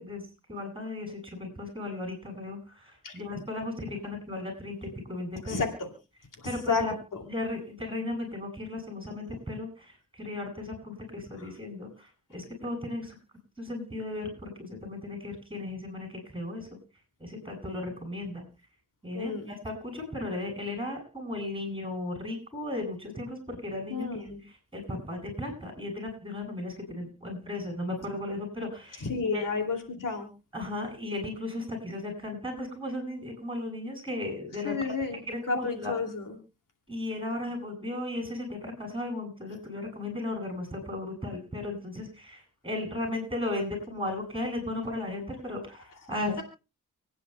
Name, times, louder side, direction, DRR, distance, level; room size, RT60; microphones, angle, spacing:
voice 1, 0.0-5.6 6.4-6.9 7.2-13.2 13.6-16.7 17.2-18.5 19.0-29.4 30.5-34.9 35.3-35.9 36.9-46.4, left 2 dB, 15° right, 1 dB, 7.8 m, -36 dB
voice 2, 5.5-5.9 6.4-6.8 19.1-19.5 23.9-24.4 29.0-30.3 34.6-36.4, left 4 dB, 70° left, 4 dB, 2.8 m, -31 dB
29.5 x 9.8 x 2.3 m, 0.31 s
cardioid pair, 60°, 33 cm